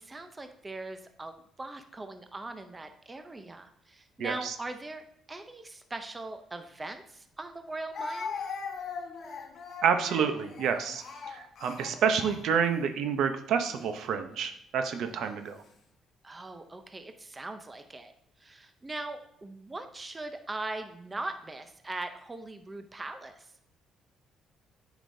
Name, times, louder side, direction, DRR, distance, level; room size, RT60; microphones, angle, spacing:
voice 1, 0.0-5.0 5.3-8.3 15.1-15.3 16.2-18.1 18.4-23.5, right 2 dB, 20° right, 7 dB, 0.6 m, -40 dB
voice 2, 4.2-4.5 9.8-15.6, right 7 dB, 70° right, 7 dB, 0.7 m, -29 dB
Speech, 6.8-6.9 7.9-12.8 13.6-13.9 14.8-15.4, left 5 dB, 50° left, 1.1 m, -40 dB
8.9 x 4.9 x 2.6 m, 0.72 s
cardioid pair, 115°, 0 cm